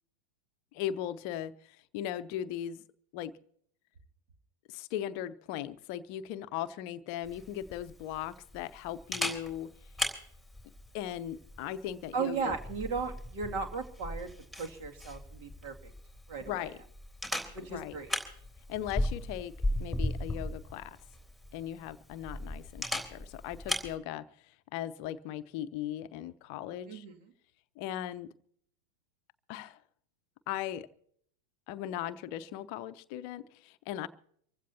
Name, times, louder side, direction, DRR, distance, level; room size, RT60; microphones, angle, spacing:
voice 1, 0.7-2.8 3.1-3.3 4.7-9.7 10.9-12.5 16.5-16.8 17.7-18.0 18.7-19.5 19.8-21.0 21.5-27.0 27.8-28.3 29.5-29.8 30.5-30.9 31.7-34.1, left 11 dB, 45° left, 12 dB, 0.7 m, -38 dB
Camera, 7.2-23.9, left 1 dB, 5° right, 3.5 m, -38 dB
voice 2, 12.1-15.9 16.3-16.7 17.5-18.2 26.8-27.3, right 5 dB, 45° right, 4 dB, 2.3 m, -36 dB
25.5 x 16.0 x 2.8 m, 0.64 s
figure-of-eight pair, 90°, 0 cm